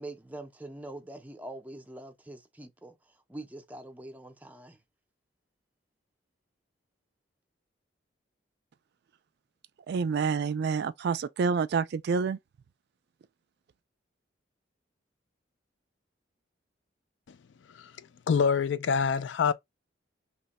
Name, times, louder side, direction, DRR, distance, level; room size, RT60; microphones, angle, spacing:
voice 1, 0.0-4.8, right 1 dB, 10° right, 0.5 m, -44 dB
voice 2, 9.9-12.4, right 5 dB, 60° right, 0.3 m, -28 dB
voice 3, 18.3-19.5, left 6 dB, 70° left, 0.4 m, -26 dB
2.9 x 2.2 x 4.0 m
head